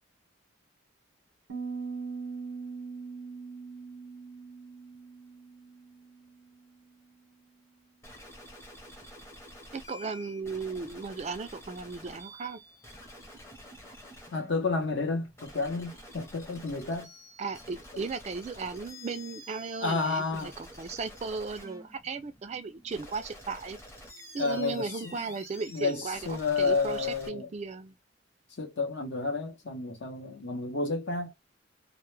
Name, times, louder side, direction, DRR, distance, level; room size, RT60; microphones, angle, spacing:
Piano, 1.5-7.1, right 4 dB, 85° right, 0.6 m, -41 dB
sound 1, 8.0-27.3, left 1 dB, 15° left, 0.7 m, -49 dB
voice 1, 9.7-12.6 17.4-23.8 24.3-28.0, right 4 dB, 35° right, 0.3 m, -36 dB
voice 2, 14.3-17.1 19.8-20.5 24.4-25.2 25.7-27.5 28.6-31.3, left 4 dB, 65° left, 0.7 m, -31 dB
2.1 x 2.1 x 3.0 m
head